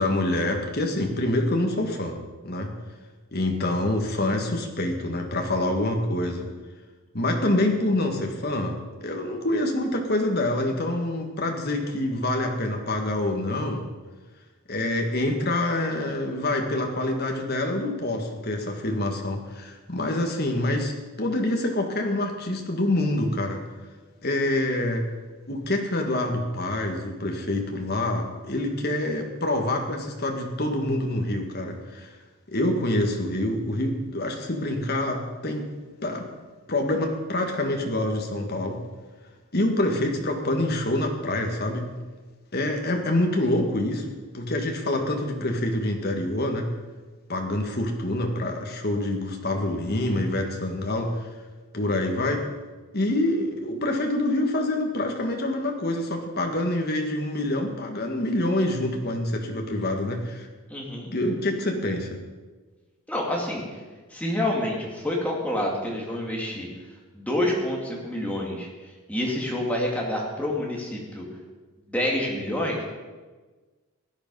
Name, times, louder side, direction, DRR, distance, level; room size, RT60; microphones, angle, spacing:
voice 1, 0.0-2.2 2.4-2.7 3.3-6.5 7.1-13.9 14.7-23.6 24.2-25.1 25.5-32.1 32.5-35.7 36.0-36.3 36.7-38.8 39.5-41.9 42.5-46.7 47.3-51.3 51.7-52.5 52.9-60.5 61.1-62.2, left 1 dB, 45° left, 3 dB, 1.8 m, -26 dB
voice 2, 60.7-61.1 63.1-63.8 64.1-66.7 67.1-68.7 69.1-71.2 71.9-72.8, left 1 dB, 5° left, -2 dB, 2.4 m, -28 dB
16.0 x 10.0 x 5.5 m, 1.3 s
head